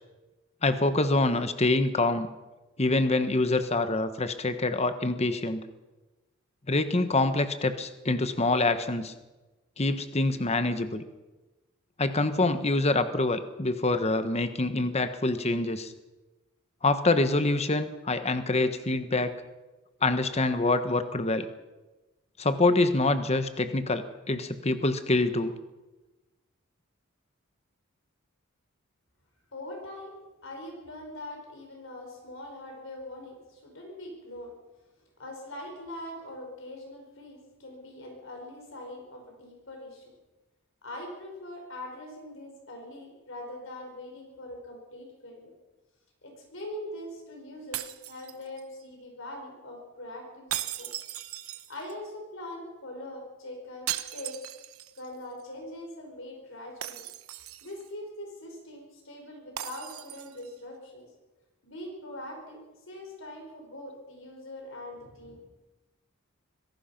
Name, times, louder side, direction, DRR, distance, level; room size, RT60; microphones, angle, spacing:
voice 1, 0.6-2.3 2.8-5.6 6.7-9.1 9.8-11.0 12.0-15.9 16.8-19.3 20.0-21.5 22.4-25.5, left 2 dB, 30° left, 10 dB, 1.2 m, -26 dB
voice 2, 29.5-30.1 30.4-34.5 35.2-40.1 40.8-45.5 46.2-50.9 51.4-54.5 55.0-57.1 57.6-61.1 61.6-65.4, left 1 dB, 65° left, 2 dB, 5.5 m, -42 dB
sound 1, 47.7-48.8 50.5-52.1 53.9-55.1 55.4-55.5 56.8-57.9 59.6-60.5, right 12 dB, 90° right, 1.1 m, -37 dB
25.5 x 17.5 x 5.9 m, 1.1 s
head